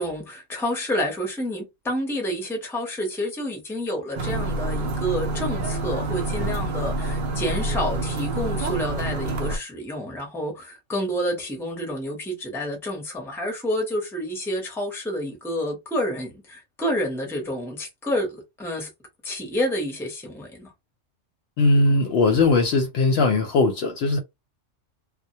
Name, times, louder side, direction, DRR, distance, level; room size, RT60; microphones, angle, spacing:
voice 1, 0.0-18.9 19.2-20.7, equal, 5° left, 0.6 m, -29 dB
sound 1, 4.1-9.6, right 2 dB, 60° right, 0.6 m, -27 dB
voice 2, 21.6-24.2, left 3 dB, 65° left, 0.7 m, -19 dB
2.1 x 2.1 x 2.7 m
omnidirectional pair, 1.3 m